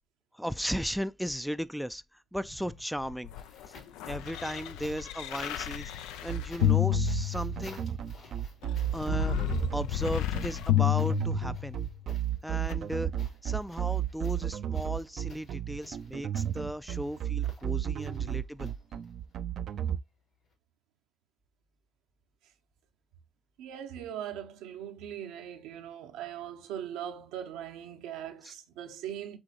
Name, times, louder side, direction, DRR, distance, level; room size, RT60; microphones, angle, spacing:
voice 1, 0.3-3.3 3.6-3.7 4.1-7.8 8.2-8.3 8.9-9.4 9.7-11.8 12.4-13.1 13.4-18.7 28.4-28.5, equal, ahead, 0.3 m, -36 dB
sound 1, 2.4-4.1 4.8-19.3 20.4-20.5, left 3 dB, 70° left, 3.2 m, -55 dB
sound 2, 3.0-7.9 8.6-11.9 12.7-12.8, left 14 dB, 90° left, 0.4 m, -31 dB
sound 3, 6.3-20.0, right 10 dB, 70° right, 0.4 m, -32 dB
voice 2, 23.6-29.4, right 10 dB, 90° right, 0.8 m, -40 dB
6.1 x 2.7 x 3.0 m
supercardioid pair, 70°, 0 cm